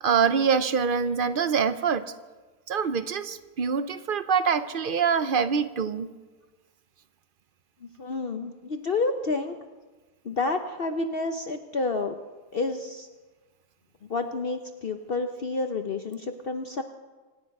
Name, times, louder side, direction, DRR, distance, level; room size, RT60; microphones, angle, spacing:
voice 1, 0.0-2.1 2.7-6.1, right 6 dB, 55° right, 12 dB, 0.6 m, -25 dB
voice 2, 7.8-9.6 10.2-12.1 12.5-13.1 14.1-16.8, left 3 dB, 45° left, 6 dB, 0.8 m, -29 dB
25.5 x 10.5 x 5.4 m, 1.3 s
omnidirectional pair, 1.6 m